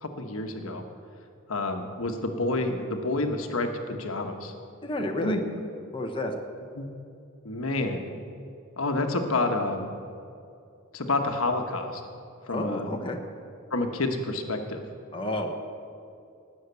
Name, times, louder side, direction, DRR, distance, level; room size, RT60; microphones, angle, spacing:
voice 1, 0.0-0.8 1.5-4.5 5.2-5.4 6.8-6.9 7.4-8.0 8.8-9.9 10.9-12.0 12.5-12.9 13.7-14.8, left 2 dB, 70° left, 5 dB, 1.2 m, -29 dB
voice 2, 4.8-5.4 5.9-6.3 12.5-13.2 15.1-15.6, left 1 dB, 25° left, 2 dB, 1.1 m, -30 dB
18.5 x 6.5 x 8.2 m, 2.5 s
head